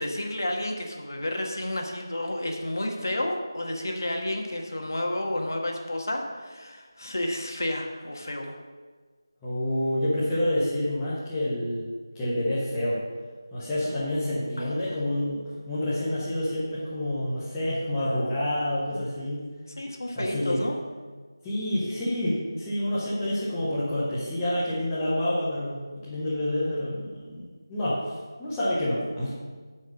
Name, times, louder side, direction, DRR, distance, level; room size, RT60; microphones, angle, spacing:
voice 1, 0.0-8.5 14.6-15.0 19.8-20.8, left 1 dB, 50° left, 2 dB, 1.5 m, -31 dB
voice 2, 9.4-11.9 12.1-13.0 13.5-19.4 20.2-20.6 21.4-28.0 28.4-29.3, left 1 dB, 5° left, -11 dB, 0.7 m, -28 dB
9.6 x 5.3 x 6.5 m, 1.4 s
figure-of-eight pair, 180°, 2 cm